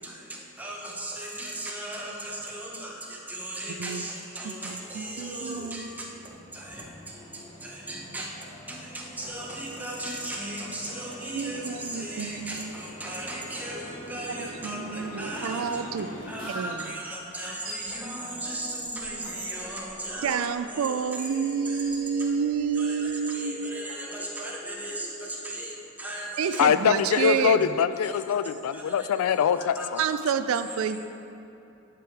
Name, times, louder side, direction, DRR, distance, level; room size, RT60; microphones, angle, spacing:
voice 1, 0.0-15.8 16.3-26.6 28.7-29.1 29.6-30.2, right 1 dB, 5° right, -2 dB, 0.8 m, -37 dB
voice 2, 4.4-5.9 11.3-12.7 14.4-16.1 16.5-17.0 20.2-23.9 26.4-27.7 30.0-31.0, right 6 dB, 75° right, 11 dB, 0.3 m, -29 dB
sound 1, 4.6-18.1, equal, 25° left, 1.6 m, -49 dB
sound 2, 11.5-16.5, equal, 40° left, 1.0 m, -43 dB
sound 3, 16.2-16.3 17.3-18.0 18.4-22.7, right 1 dB, 45° right, 1.3 m, -47 dB
voice 3, 26.6-30.0, left 7 dB, 85° left, 13 dB, 0.3 m, -23 dB
10.0 x 4.8 x 4.6 m, 2.9 s
head